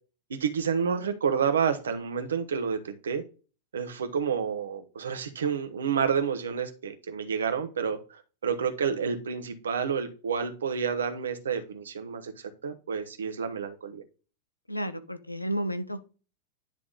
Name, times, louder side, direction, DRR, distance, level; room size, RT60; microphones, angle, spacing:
voice 1, 0.3-3.2 3.7-14.0, right 6 dB, 65° right, 1.2 m, -29 dB
voice 2, 14.7-16.0, equal, 85° left, 0.8 m, -32 dB
10.5 x 3.6 x 3.8 m
figure-of-eight pair, 90°, 0 cm